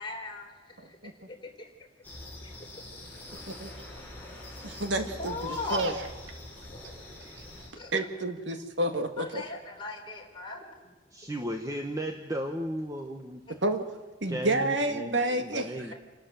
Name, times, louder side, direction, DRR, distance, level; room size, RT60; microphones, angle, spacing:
voice 1, 0.0-1.0 1.3-1.7 5.2-5.9 7.8-7.9 9.2-10.7 13.5-13.6, left 3 dB, 25° left, 0 dB, 3.8 m, -38 dB
sound 1, 2.0-7.7, left 1 dB, 10° left, 5.0 m, -44 dB
voice 2, 4.6-5.3 5.7-5.9 7.9-9.4 13.6-13.8 14.2-15.7, right 1 dB, 70° right, 7 dB, 1.9 m, -29 dB
voice 3, 11.1-13.4 14.3-15.9, equal, 20° right, 4 dB, 1.2 m, -35 dB
28.5 x 12.5 x 7.6 m, 1.2 s
head